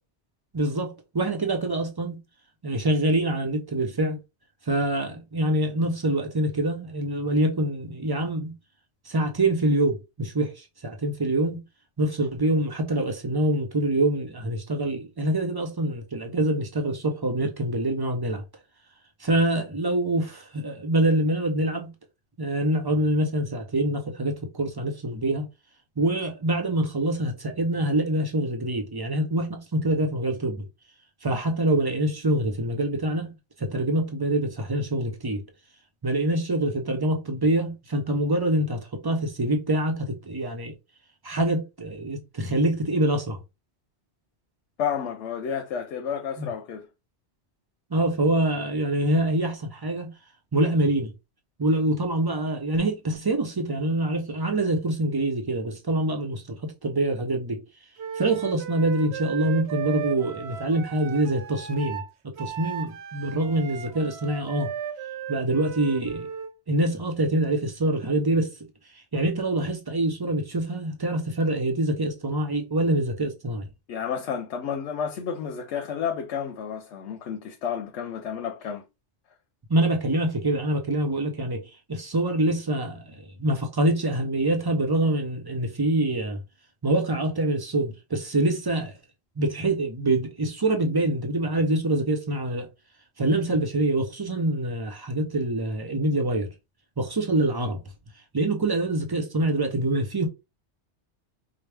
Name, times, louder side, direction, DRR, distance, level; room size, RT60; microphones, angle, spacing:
voice 1, 0.5-2.2 2.6-4.2 4.7-8.6 9.1-11.6 12.0-18.4 19.2-21.9 22.4-25.5 26.0-30.6 31.2-33.3 33.6-35.4 36.0-40.7 41.2-43.4 46.4-46.5 47.9-50.1 50.5-51.1 51.6-57.6 58.2-64.7 65.3-66.3 66.7-68.5 69.1-73.7 79.7-81.6 81.9-86.4 86.8-88.9 89.4-92.7 93.2-96.5 97.0-97.8 98.3-100.3, right 1 dB, 30° right, 0.4 m, -25 dB
voice 2, 44.8-46.9 73.9-78.8, left 7 dB, 85° left, 0.9 m, -31 dB
Wind instrument woodwind instrument, 58.0-66.5, right 8 dB, 75° right, 0.9 m, -36 dB
4.8 x 2.0 x 3.3 m
omnidirectional pair, 1.2 m